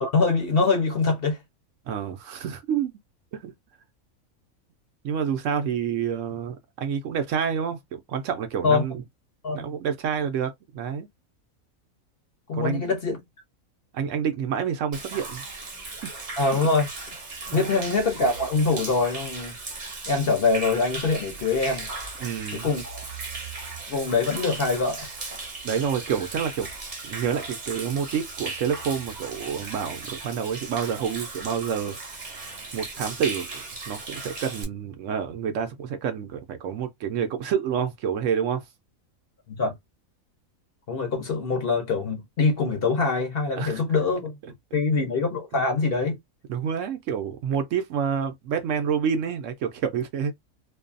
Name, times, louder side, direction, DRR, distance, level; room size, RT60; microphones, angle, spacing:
voice 1, 0.0-1.4 8.6-8.8 9.4-9.7 12.5-13.2 16.4-16.9 17.5-19.5 20.1-21.9 22.5-23.0 23.9-25.1 39.5-39.8 40.9-44.4 44.7-46.2, left 4 dB, 50° left, 0.8 m, -24 dB
voice 2, 1.9-2.9 3.3-3.5 5.0-9.0 9.5-11.1 12.5-12.9 13.9-15.4 16.5-16.6 17.5-17.9 22.2-22.7 25.6-26.7 27.0-32.0 32.7-38.6 43.6-43.8 46.5-50.3, right 7 dB, 70° right, 0.9 m, -28 dB
Human voice / Rain / Stream, 14.9-34.6, right 3 dB, 40° right, 0.8 m, -37 dB
2.6 x 2.3 x 2.4 m
omnidirectional pair, 1.5 m